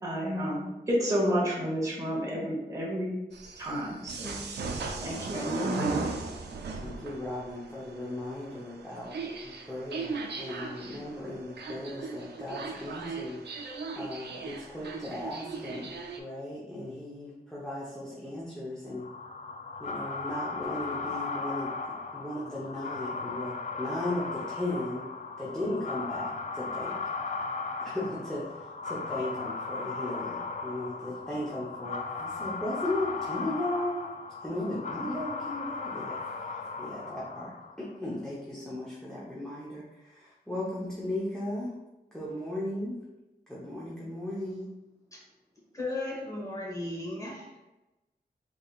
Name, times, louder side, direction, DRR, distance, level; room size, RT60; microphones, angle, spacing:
voice 1, 0.0-3.1 3.6-4.3 5.0-6.1, equal, 20° right, -5 dB, 1.1 m, -30 dB
sound 1, 3.3-16.2, right 4 dB, 85° right, 0.4 m, -38 dB
voice 2, 6.7-9.1 9.4-13.6 14.0-15.9 16.2-19.1 19.8-21.7 22.1-25.1 25.4-27.0 27.8-28.5 28.8-34.0 34.4-36.2 36.8-41.8 42.1-43.0 43.5-44.7, left 1 dB, 5° left, -7 dB, 0.9 m, -36 dB
sound 2, 19.0-37.9, left 4 dB, 45° left, 0.4 m, -37 dB
voice 3, 45.7-47.7, left 2 dB, 20° left, -4 dB, 1.3 m, -36 dB
3.9 x 3.5 x 2.4 m, 1.0 s
wide cardioid pair, 80°, 17 cm